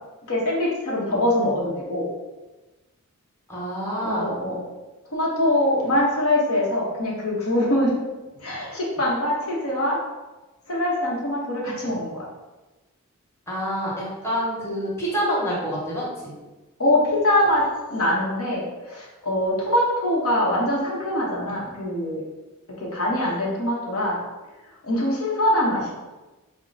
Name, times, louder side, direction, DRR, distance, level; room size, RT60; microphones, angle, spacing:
voice 1, 0.3-2.0 4.0-4.6 5.0-7.9 8.4-10.0 10.7-12.2 16.8-22.2 22.8-24.2 24.8-25.9, left 1 dB, 75° left, -4 dB, 0.9 m, -23 dB
voice 2, 3.5-4.2 13.5-16.3, equal, 10° left, -7 dB, 1.1 m, -27 dB
4.3 x 2.1 x 3.9 m, 1.2 s
head